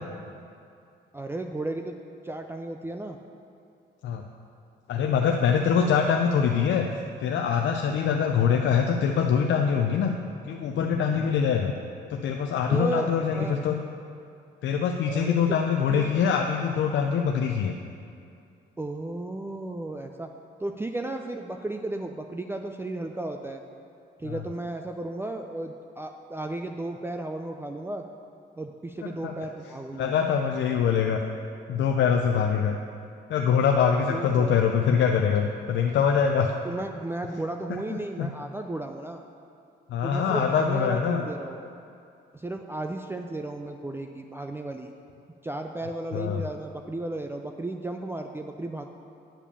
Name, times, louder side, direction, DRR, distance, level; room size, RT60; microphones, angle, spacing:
voice 1, 1.1-1.9 2.2-3.2 5.8-6.0 12.7-13.6 15.1-15.6 15.9-16.1 18.8-20.3 20.6-23.6 24.2-28.0 28.6-30.1 34.1-34.6 36.6-39.2 40.0-41.6 42.3-44.9 45.4-48.9, right 2 dB, 10° right, 4 dB, 0.4 m, -34 dB
voice 2, 4.9-6.9 7.2-10.1 10.4-11.7 12.1-13.8 14.6-17.7 24.2-24.4 29.2-29.3 30.0-31.2 31.7-32.8 33.3-36.5 37.9-38.3 39.9-41.2 46.1-46.4, left 7 dB, 65° left, 3 dB, 0.5 m, -24 dB
8.9 x 5.0 x 6.7 m, 2.5 s
cardioid pair, 90°, 20 cm